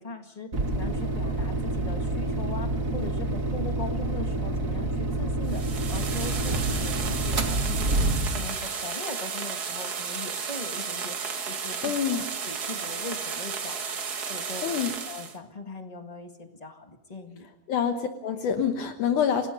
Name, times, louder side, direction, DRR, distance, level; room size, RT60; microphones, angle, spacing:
voice 1, 0.0-5.6 5.9-11.2 11.4-14.0 14.3-14.7 15.1-17.5, left 3 dB, 20° left, 5 dB, 0.9 m, -40 dB
sound 1, 0.5-8.6, right 2 dB, 30° right, 1.7 m, -28 dB
sound 2, 5.4-15.4, right 6 dB, 45° right, 1.2 m, -33 dB
voice 2, 11.8-12.2 14.6-14.9 17.7-19.5, left 8 dB, 70° left, 6 dB, 2.5 m, -26 dB
28.5 x 19.0 x 5.4 m, 0.86 s
omnidirectional pair, 3.9 m